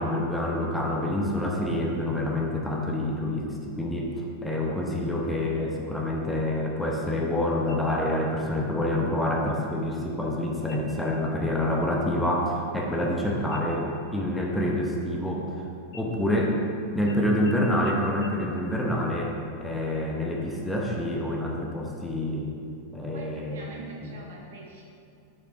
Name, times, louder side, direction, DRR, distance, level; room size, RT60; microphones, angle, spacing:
voice 1, 0.0-15.6 15.9-16.6 16.9-22.5 22.9-23.6 24.0-24.1, left 1 dB, 5° left, -2 dB, 0.9 m, -27 dB
sound 1, 7.7-8.3 8.7-8.8 9.4-9.9 10.6-11.1 11.5-11.8 12.1-13.2 13.5-15.5 15.9-16.7 17.1-17.2 17.4-17.5 17.8-17.9 18.2-18.3, left 3 dB, 50° left, 1.7 m, -51 dB
voice 2, 23.0-24.9, right 1 dB, 60° right, -1 dB, 1.3 m, -42 dB
6.8 x 5.3 x 4.5 m, 2.4 s
figure-of-eight pair, 90°, 0 cm